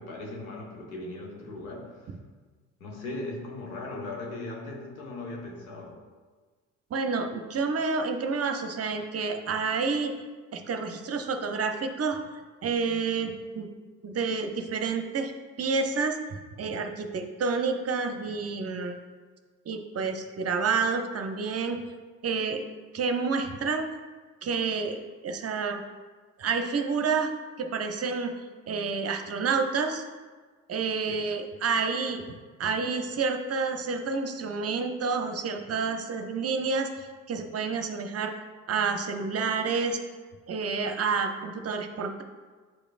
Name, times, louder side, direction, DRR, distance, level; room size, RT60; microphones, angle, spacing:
voice 1, 0.0-1.9 2.8-6.0 31.1-31.3, left 2 dB, 85° left, -1 dB, 1.1 m, -38 dB
voice 2, 6.9-10.1 10.5-12.2 12.6-13.7 14.0-15.3 15.6-19.0 19.7-21.8 22.2-22.6 22.9-23.9 24.4-25.8 26.4-27.3 27.6-28.3 28.7-30.0 30.7-32.2 32.6-38.4 38.7-40.0 40.5-42.2, right 4 dB, 35° right, 6 dB, 0.7 m, -29 dB
8.1 x 5.0 x 2.5 m, 1.4 s
figure-of-eight pair, 50°, 41 cm